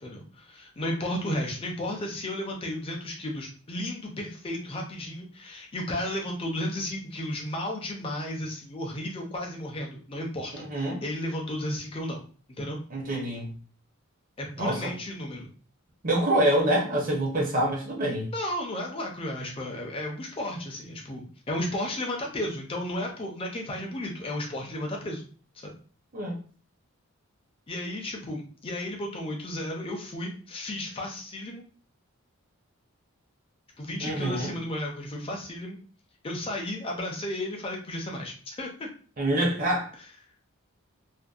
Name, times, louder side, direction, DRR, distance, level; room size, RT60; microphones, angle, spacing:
voice 1, 0.0-12.2 12.6-12.8 14.4-15.5 18.3-25.3 25.5-25.7 27.7-31.6 33.8-35.8 36.2-38.9, left 1 dB, 25° left, 0.4 m, -33 dB
voice 2, 10.7-11.0 12.9-13.6 14.6-14.9 16.0-18.3 26.1-26.4 34.0-34.5 39.2-39.9, right 1 dB, 40° right, 0.6 m, -26 dB
2.5 x 2.1 x 2.3 m
head